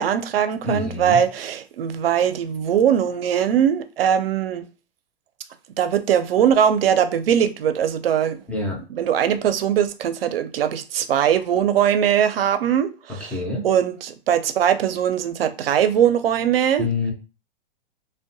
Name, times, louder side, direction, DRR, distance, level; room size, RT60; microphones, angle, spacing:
voice 1, 0.0-4.7 5.8-8.4 8.9-13.3 13.6-16.9, right 9 dB, 80° right, 0.5 m, -21 dB
voice 2, 0.6-1.2 8.5-8.8 13.2-13.7 16.8-17.1, left 3 dB, 5° left, 0.4 m, -26 dB
2.6 x 2.1 x 2.6 m
hypercardioid pair, 125°, 29 cm